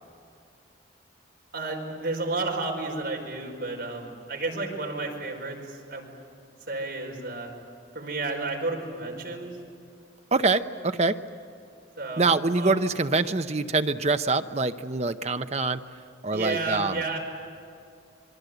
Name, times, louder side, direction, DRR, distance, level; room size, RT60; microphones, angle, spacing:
voice 1, 1.5-6.1 6.7-7.5 7.9-9.5 12.0-12.2 12.5-12.8 16.3-17.2, right 2 dB, 55° right, 0 dB, 5.0 m, -31 dB
voice 2, 10.3-11.2 12.2-15.8 16.2-17.0, right 3 dB, 35° right, 9 dB, 0.7 m, -25 dB
27.0 x 23.5 x 8.0 m, 2.5 s
head